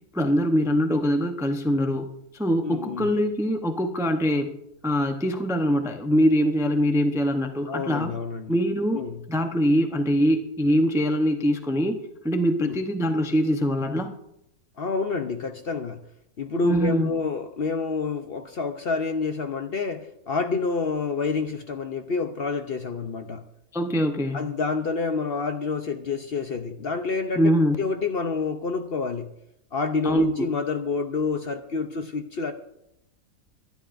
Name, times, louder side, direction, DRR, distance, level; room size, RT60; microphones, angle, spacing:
voice 1, 0.1-2.1 2.3-4.5 4.8-8.1 8.5-9.0 9.3-12.0 12.2-14.1 16.6-17.1 23.7-24.4 27.4-27.8 30.0-30.3, equal, 5° right, 5 dB, 0.5 m, -23 dB
voice 2, 2.6-3.1 7.7-8.6 8.9-9.2 12.6-12.8 14.8-16.0 16.4-23.4 24.3-27.5 27.8-29.3 29.7-32.5, left 4 dB, 50° left, 7 dB, 0.8 m, -28 dB
22.5 x 11.5 x 2.6 m, 0.80 s
omnidirectional pair, 1.5 m